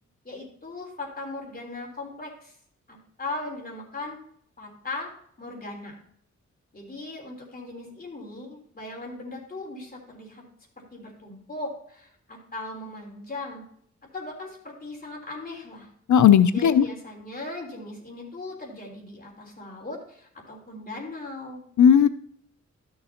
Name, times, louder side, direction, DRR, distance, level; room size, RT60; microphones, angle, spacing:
voice 1, 0.2-2.6 2.9-4.2 4.6-5.1 5.4-6.0 6.7-10.4 10.8-13.6 14.1-15.9 16.5-21.6, left 2 dB, 30° left, -1 dB, 3.6 m, -38 dB
voice 2, 16.1-16.9 21.8-22.1, left 8 dB, 75° left, 13 dB, 0.5 m, -15 dB
12.5 x 6.7 x 2.9 m, 0.64 s
wide cardioid pair, 100°, 30 cm